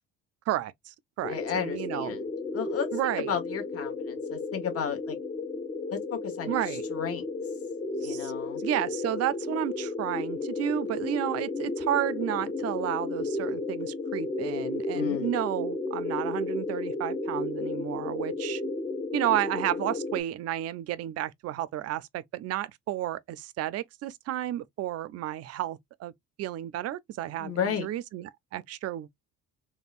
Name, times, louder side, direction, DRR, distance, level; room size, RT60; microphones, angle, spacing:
voice 1, 0.5-2.2 2.9-3.4 6.5-6.8 8.0-8.3 8.6-18.6 19.1-26.1 26.4-29.1, right 13 dB, 50° right, 0.4 m, -32 dB
sound 1, 1.2-20.2, left 3 dB, 15° left, 0.4 m, -33 dB
voice 2, 1.3-2.3 2.5-5.2 5.9-6.6 6.9-7.2 8.0-8.6 14.9-15.3 27.4-27.9, left 7 dB, 45° left, 1.2 m, -33 dB
3.5 x 2.1 x 2.4 m
cardioid pair, 115°, 31 cm